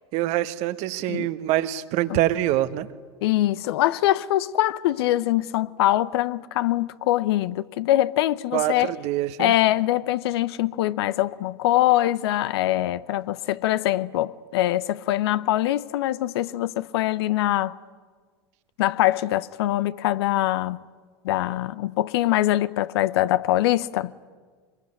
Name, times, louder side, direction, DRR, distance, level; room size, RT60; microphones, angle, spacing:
voice 1, 0.1-2.9 8.5-9.5, right 14 dB, 55° right, 1.2 m, -25 dB
voice 2, 3.2-8.9 9.4-17.7 18.8-20.8 21.2-24.1, left 15 dB, 65° left, 0.7 m, -23 dB
24.5 x 21.0 x 9.8 m
hypercardioid pair, 85°, 14 cm